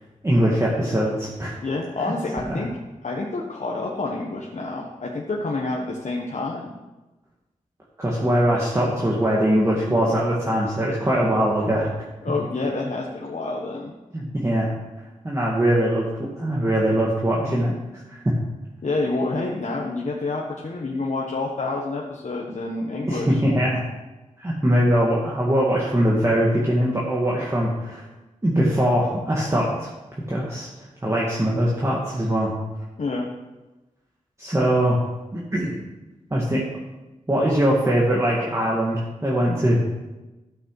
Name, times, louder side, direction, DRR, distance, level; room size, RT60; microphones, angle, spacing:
voice 1, 0.2-1.6 2.4-2.6 8.0-11.9 14.1-14.7 15.2-16.1 16.4-17.7 18.1-18.3 23.1-23.8 24.4-28.0 28.4-29.9 30.3-30.7 31.0-32.5 34.4-35.0 35.3-35.8 36.3-36.6 37.3-39.8, equal, 20° right, -5 dB, 1.9 m, -21 dB
voice 2, 1.6-2.7 3.0-6.7 12.2-13.9 18.8-23.4 33.0-33.3 34.6-34.7, left 3 dB, 60° left, -2 dB, 1.4 m, -28 dB
13.0 x 7.9 x 4.8 m, 1.1 s
wide cardioid pair, 110°, 14 cm